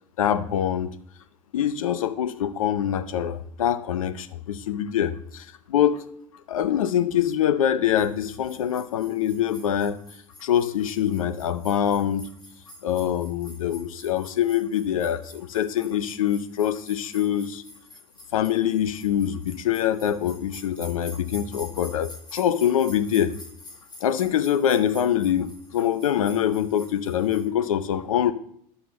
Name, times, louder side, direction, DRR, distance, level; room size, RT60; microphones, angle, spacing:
voice 1, 0.2-0.9 1.5-6.0 6.5-10.0 10.4-12.3 12.8-17.6 18.3-23.4 24.0-28.3, left 10 dB, 90° left, 12 dB, 0.7 m, -24 dB
sound 1, 8.0-27.5, left 1 dB, 25° left, 4.9 m, -48 dB
11.0 x 6.7 x 5.5 m, 0.63 s
hypercardioid pair, 85°, 17 cm